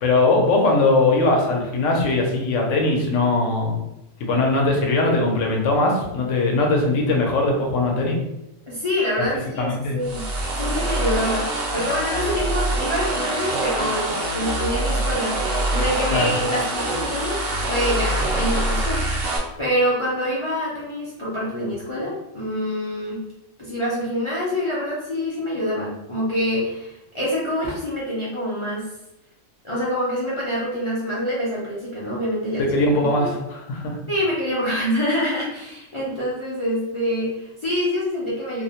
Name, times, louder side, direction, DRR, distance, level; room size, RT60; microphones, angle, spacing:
voice 1, 0.0-3.8 4.2-8.2 9.6-10.0 16.1-16.3 32.6-34.0, left 2 dB, 80° left, 0 dB, 1.0 m, -20 dB
voice 2, 8.7-10.2 10.6-15.3 15.7-17.4 17.7-23.2 23.6-28.9 29.6-32.7 33.0-33.3 34.1-38.6, equal, 50° left, -7 dB, 0.3 m, -26 dB
sound 1, 10.0-19.4, right 1 dB, 65° right, 0.7 m, -24 dB
2.5 x 2.0 x 2.8 m, 0.88 s
omnidirectional pair, 1.3 m